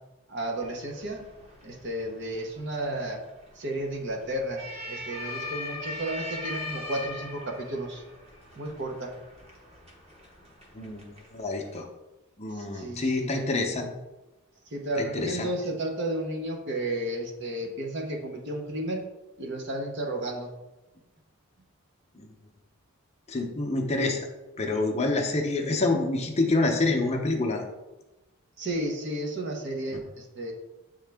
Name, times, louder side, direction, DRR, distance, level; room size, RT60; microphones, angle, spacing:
voice 1, 0.3-1.2 1.6-3.2 3.6-8.0 8.6-9.1 12.5-13.5 14.7-19.1 19.4-20.5 28.6-30.5, right 1 dB, 50° right, 2 dB, 0.9 m, -33 dB
sound 1, 0.6-11.8, left 2 dB, 30° right, 1.1 m, -41 dB
voice 2, 11.3-11.9 12.4-13.9 15.0-15.5 22.2-22.3 23.3-24.3 24.6-27.6, left 2 dB, 30° left, 3 dB, 0.6 m, -27 dB
7.5 x 3.6 x 3.4 m, 1.0 s
head